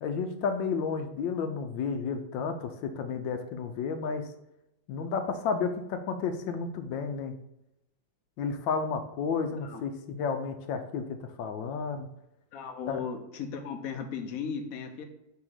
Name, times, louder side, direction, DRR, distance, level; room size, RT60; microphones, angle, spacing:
voice 1, 0.0-4.3 4.9-7.4 8.4-12.1 12.9-13.0, left 5 dB, 85° left, 7 dB, 1.3 m, -32 dB
voice 2, 12.5-15.1, left 6 dB, 60° left, 5 dB, 1.0 m, -36 dB
4.9 x 3.5 x 5.6 m, 0.86 s
omnidirectional pair, 2.0 m